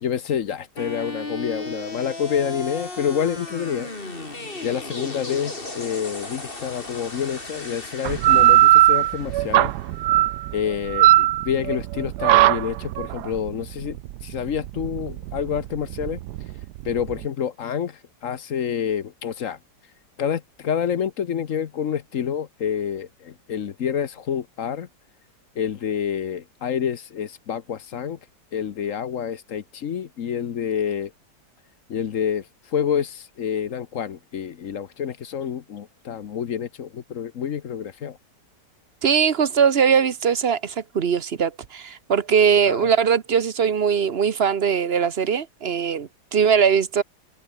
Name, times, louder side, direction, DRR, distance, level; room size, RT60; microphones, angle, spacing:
voice 1, 0.0-3.9 4.6-9.7 10.5-14.0 14.2-16.2 16.8-19.6 20.2-24.9 25.6-28.2 28.5-31.1 31.9-32.4 32.7-38.2 42.7-42.9, left 8 dB, 55° left, 1.2 m, -28 dB
sound 1, 0.8-10.8, left 2 dB, 30° left, 3.6 m, -36 dB
sound 2, 8.1-17.2, right 15 dB, 75° right, 1.1 m, -19 dB
voice 2, 39.0-47.0, right 7 dB, 40° right, 1.0 m, -20 dB
omnidirectional pair, 1.9 m